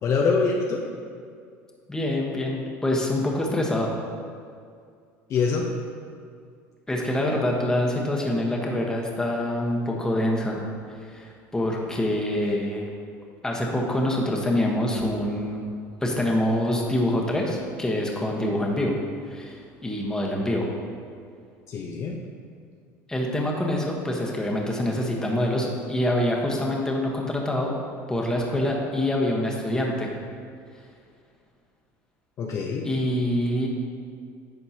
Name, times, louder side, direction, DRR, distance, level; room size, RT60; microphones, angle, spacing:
voice 1, 0.0-0.8 5.3-5.7 21.7-22.2 32.4-32.9, left 4 dB, 45° left, 0 dB, 0.8 m, -24 dB
voice 2, 1.9-3.9 6.9-10.6 11.0-12.9 13.4-15.6 16.0-18.9 19.3-20.7 23.1-27.7 28.1-30.1 32.8-33.7, left 1 dB, 10° left, -1 dB, 1.2 m, -25 dB
11.0 x 6.4 x 2.9 m, 2.2 s
supercardioid pair, 120°, 7 cm